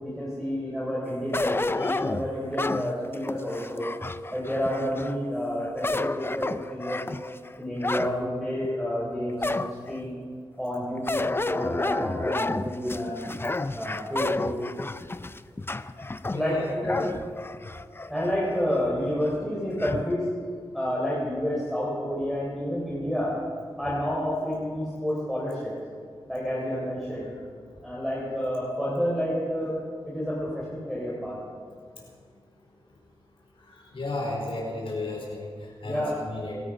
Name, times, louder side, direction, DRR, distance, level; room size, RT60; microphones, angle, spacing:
voice 1, 0.0-3.9 4.3-7.0 7.6-10.2 10.6-13.3 13.7-14.5 16.3-17.1 18.1-20.3 20.7-23.3 23.8-25.7 26.3-27.3 27.8-29.7 30.0-31.4 35.8-36.2, equal, ahead, -7 dB, 4.6 m, -29 dB
sound 1, 1.3-5.2 5.6-8.2 8.6-8.7 9.4-10.0 11.1-18.1 18.6-18.7 19.8-20.1, left 2 dB, 25° left, 0.5 m, -30 dB
voice 2, 16.3-17.0 33.7-36.6, left 2 dB, 65° left, -3 dB, 4.5 m, -34 dB
22.0 x 12.5 x 5.2 m, 2.1 s
cardioid pair, 60°, 10 cm